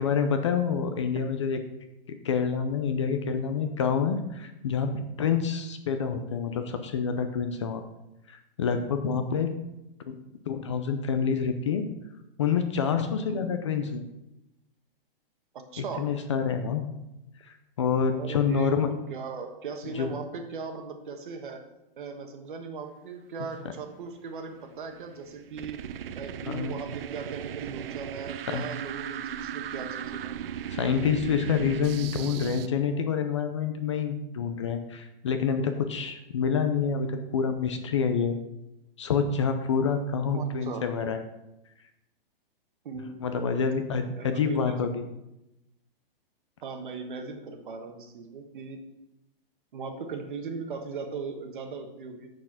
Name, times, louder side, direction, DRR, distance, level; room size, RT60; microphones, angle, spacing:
voice 1, 0.0-1.6 2.1-4.9 5.2-7.8 8.3-9.5 10.1-10.2 10.5-11.9 12.4-14.0 15.8-16.9 17.4-18.9 19.9-20.1 26.4-26.8 28.5-28.7 30.7-38.4 39.0-41.2 43.2-45.0, left 6 dB, 30° left, 7 dB, 0.5 m, -27 dB
voice 2, 15.5-16.1 18.1-21.6 22.0-25.8 26.1-30.4 40.3-40.8 42.8-43.2 44.2-44.9 46.6-48.8 49.7-52.3, right 5 dB, 60° right, 6 dB, 1.3 m, -38 dB
Alien Craft, 24.6-32.7, right 9 dB, 75° right, 0.5 m, -37 dB
6.7 x 6.4 x 5.8 m, 0.90 s
hypercardioid pair, 175°, 29 cm